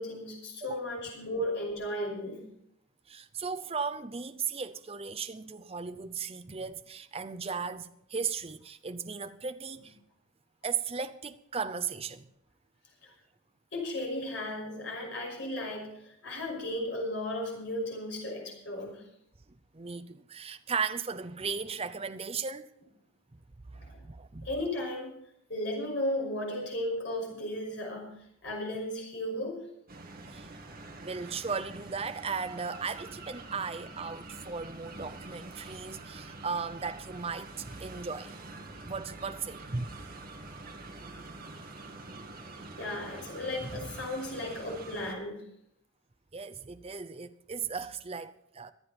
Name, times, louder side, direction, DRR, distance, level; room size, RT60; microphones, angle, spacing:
voice 1, 0.0-2.5 13.0-13.1 13.7-19.0 23.7-24.0 24.4-25.1 25.5-28.1 28.4-29.6 42.8-45.5, left 1 dB, 60° left, 5.7 m, -35 dB
voice 2, 3.1-10.0 10.6-12.3 19.7-22.7 23.7-24.5 30.3-30.5 31.0-38.3 38.8-40.0 43.6-43.9 46.3-48.7, right 5 dB, 30° right, 0.6 m, -36 dB
sound 1, 29.9-45.1, right 2 dB, 45° right, 2.1 m, -46 dB
24.5 x 8.7 x 4.3 m
head